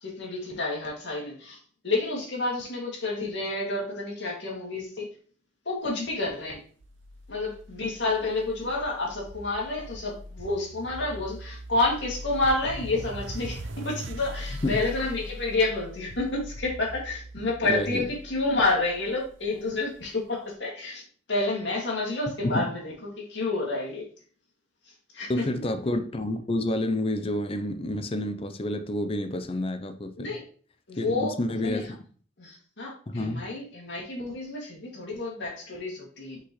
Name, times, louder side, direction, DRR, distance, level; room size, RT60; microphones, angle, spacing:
voice 1, 0.0-1.6 1.8-5.1 5.7-6.6 7.3-21.0 21.3-24.1 25.1-25.4 30.2-30.4 30.9-31.4 31.6-31.8 32.4-36.4, left 2 dB, 65° left, -1 dB, 2.4 m, -29 dB
sound 1, 6.8-20.0, equal, 85° right, 0.8 m, -41 dB
voice 2, 17.6-18.0 22.4-22.7 25.3-30.4 31.0-31.9 33.1-33.5, left 1 dB, 30° left, 9 dB, 0.6 m, -29 dB
6.0 x 5.8 x 3.1 m, 0.43 s
head